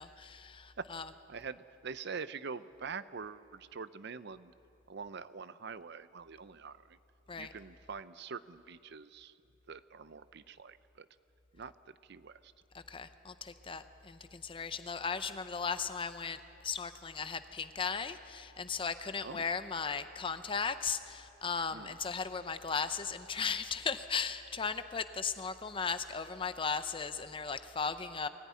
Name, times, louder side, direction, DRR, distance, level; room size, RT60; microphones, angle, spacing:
voice 1, 0.0-1.1 7.3-7.5 12.7-28.3, left 5 dB, 25° left, 11 dB, 0.6 m, -37 dB
voice 2, 1.3-4.5 4.9-7.0 7.3-9.3 9.7-11.1 11.5-12.5 19.2-19.4 21.7-22.0, right 5 dB, 60° right, 14 dB, 0.6 m, -45 dB
21.5 x 14.5 x 9.6 m, 2.7 s
head